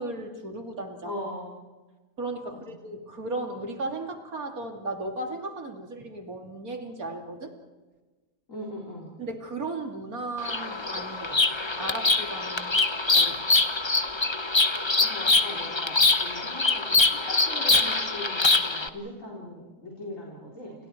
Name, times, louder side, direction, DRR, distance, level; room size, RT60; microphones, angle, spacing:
voice 1, 0.0-1.2 2.2-7.5 9.2-11.4 11.7-12.7 13.1-13.4, right 2 dB, 65° right, 3 dB, 3.3 m, -35 dB
voice 2, 1.0-1.5 8.5-9.2 15.0-20.9, left 1 dB, 55° left, -2 dB, 4.4 m, -40 dB
Bird vocalization bird call bird song, 10.4-18.9, left 3 dB, 20° left, 1.0 m, -24 dB
29.5 x 29.5 x 4.6 m, 1.2 s
omnidirectional pair, 1.6 m